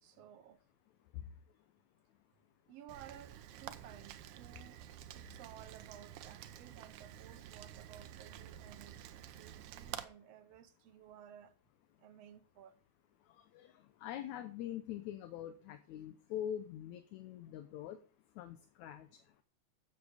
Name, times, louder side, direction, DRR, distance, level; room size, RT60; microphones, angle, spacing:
voice 1, 0.0-0.6 2.7-4.8 5.1-9.0 9.4-11.5 12.0-12.8, right 10 dB, 70° right, 1.7 m, -56 dB
Rain, 2.9-10.0, right 11 dB, 85° right, 2.2 m, -50 dB
voice 2, 13.2-18.0 18.4-19.4, left 10 dB, 75° left, 2.1 m, -44 dB
13.5 x 8.0 x 5.0 m
omnidirectional pair, 3.4 m